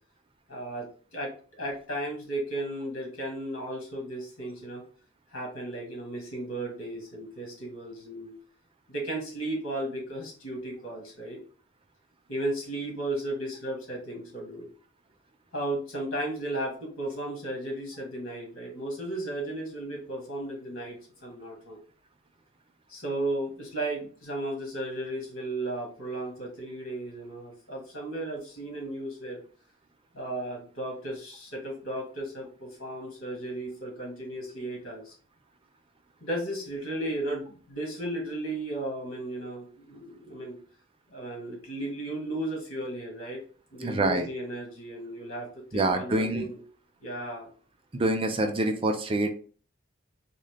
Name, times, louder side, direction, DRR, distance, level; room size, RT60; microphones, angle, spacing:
voice 1, 0.5-0.9 1.1-4.8 5.3-8.4 8.9-11.4 12.3-14.7 15.5-21.8 22.9-29.4 30.1-35.1 36.2-40.6 41.1-43.4 43.7-46.6 47.0-47.5, right 1 dB, 70° left, -1 dB, 1.7 m, -35 dB
voice 2, 43.8-44.3 45.7-46.5 47.9-49.3, right 2 dB, 25° right, 4 dB, 0.5 m, -26 dB
3.7 x 2.7 x 3.4 m, 0.41 s
head